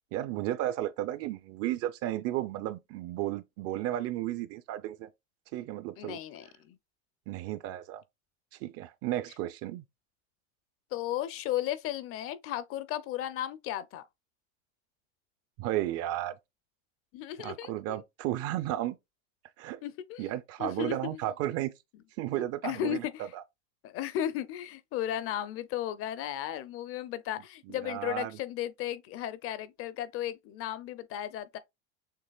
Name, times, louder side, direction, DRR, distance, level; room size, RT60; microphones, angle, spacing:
voice 1, 0.1-5.1 5.5-6.2 7.3-8.0 8.6-9.8 15.6-16.3 17.4-19.0 19.6-19.8 20.2-21.7 22.2-23.0 23.3-23.4 27.7-28.4, right 14 dB, 40° right, 0.4 m, -33 dB
voice 2, 6.0-6.8 10.9-14.0 17.1-18.0 19.8-20.3 20.6-21.0 22.6-23.3 23.8-31.6, left 11 dB, 35° left, 0.5 m, -35 dB
6.6 x 2.8 x 2.3 m
supercardioid pair, 115°, 38 cm